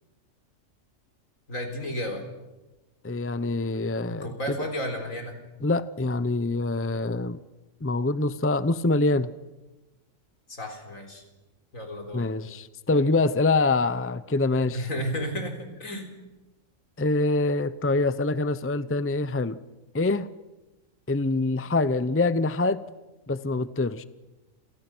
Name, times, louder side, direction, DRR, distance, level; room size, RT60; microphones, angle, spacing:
voice 1, 1.5-2.2 4.1-5.4 10.5-11.2 11.7-12.3 14.7-16.1, equal, 75° left, 4 dB, 4.5 m, -32 dB
voice 2, 3.0-4.6 5.6-7.4 7.8-9.3 12.1-14.9 17.0-19.6 19.9-20.3 21.1-22.8 23.3-24.0, left 2 dB, 15° left, 14 dB, 0.6 m, -25 dB
29.0 x 29.0 x 6.2 m, 1.1 s
omnidirectional pair, 1.4 m